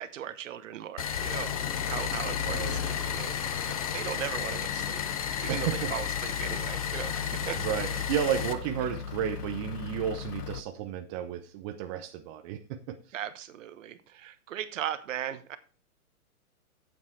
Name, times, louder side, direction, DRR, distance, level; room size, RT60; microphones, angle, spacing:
voice 1, 0.0-1.5 1.9-5.0 5.4-7.6 13.1-15.6, right 10 dB, 55° right, 13 dB, 1.0 m, -38 dB
sound 1, 1.0-8.5, left 8 dB, 25° left, 0.4 m, -34 dB
Truck / Idling, 1.2-10.6, left 8 dB, 90° left, 0.9 m, -37 dB
voice 2, 2.4-2.9 5.5-5.9 7.4-13.0, right 9 dB, 20° right, 6 dB, 0.6 m, -32 dB
8.8 x 7.3 x 4.4 m, 0.38 s
hypercardioid pair, 125°, 46 cm